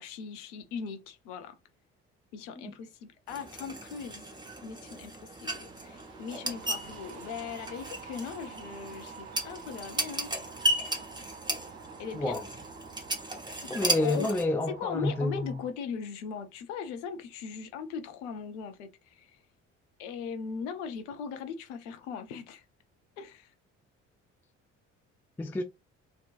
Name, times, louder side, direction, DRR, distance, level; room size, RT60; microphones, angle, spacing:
voice 1, 0.0-1.6 2.3-4.2 4.6-10.3 12.0-12.5 13.6-13.7 14.0-14.3 14.7-19.4 20.0-22.7 23.2-23.5, left 6 dB, 65° left, 0.7 m, -39 dB
sound 1, 3.3-14.4, right 1 dB, 10° right, 1.0 m, -35 dB
sound 2, 5.5-15.7, right 6 dB, 70° right, 0.7 m, -49 dB
voice 2, 13.7-15.6 25.4-25.6, left 2 dB, 5° left, 0.3 m, -29 dB
3.2 x 2.9 x 2.5 m
figure-of-eight pair, 50°, 38 cm